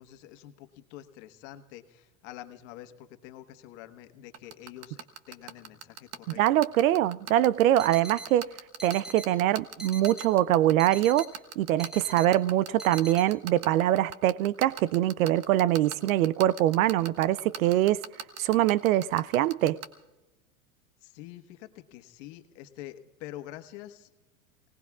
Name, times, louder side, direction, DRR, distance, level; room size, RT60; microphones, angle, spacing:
voice 1, 0.0-6.4 21.0-24.1, left 13 dB, 55° left, 1.5 m, -46 dB
sound 1, 4.3-19.9, right 8 dB, 40° right, 1.5 m, -38 dB
voice 2, 6.4-8.5 8.8-18.0 18.4-19.8, right 13 dB, 75° right, 0.6 m, -24 dB
sound 2, 7.8-8.3 8.8-9.3 9.8-10.3 10.8-11.3 11.8-12.3 12.8-13.2, right 1 dB, ahead, 1.5 m, -42 dB
29.0 x 19.0 x 2.4 m
hypercardioid pair, 120°, 41 cm